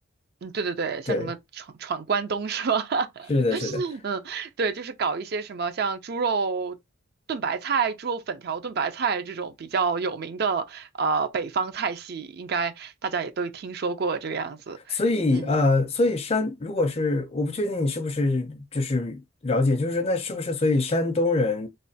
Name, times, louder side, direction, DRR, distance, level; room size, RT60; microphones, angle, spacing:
voice 1, 0.4-6.8 7.3-15.0 15.3-15.5, right 5 dB, 50° right, 0.4 m, -28 dB
voice 2, 3.3-3.8 14.9-21.7, left 2 dB, 30° left, 0.4 m, -24 dB
3.1 x 2.2 x 2.7 m
head